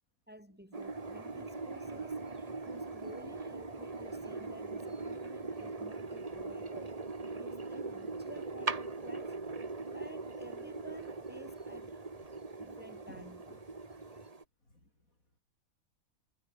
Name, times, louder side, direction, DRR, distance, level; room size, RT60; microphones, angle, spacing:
voice 1, 0.3-2.3 2.6-9.4 9.9-12.0 12.6-13.4, equal, 5° right, 5.9 m, -52 dB
sound 1, 0.7-14.4, right 3 dB, 25° right, 1.5 m, -41 dB
sound 2, 0.9-14.3, left 1 dB, 15° left, 4.3 m, -61 dB
voice 2, 13.1-13.6 14.6-15.4, left 2 dB, 65° left, 8.0 m, -59 dB
omnidirectional pair, 1.5 m